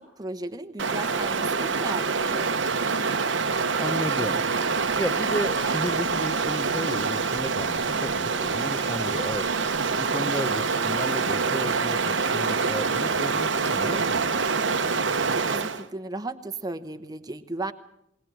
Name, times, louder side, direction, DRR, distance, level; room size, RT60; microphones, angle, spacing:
voice 1, 0.0-2.8 15.3-17.7, right 2 dB, 20° right, 8 dB, 1.0 m, -35 dB
Stream, 0.8-15.9, right 4 dB, 75° right, 1.1 m, -26 dB
sound 1, 1.1-14.5, right 1 dB, 30° left, 2.6 m, -49 dB
voice 2, 3.8-4.5 4.7-9.6 10.0-14.4, equal, 10° left, 12 dB, 0.7 m, -33 dB
20.5 x 19.0 x 7.6 m, 0.79 s
head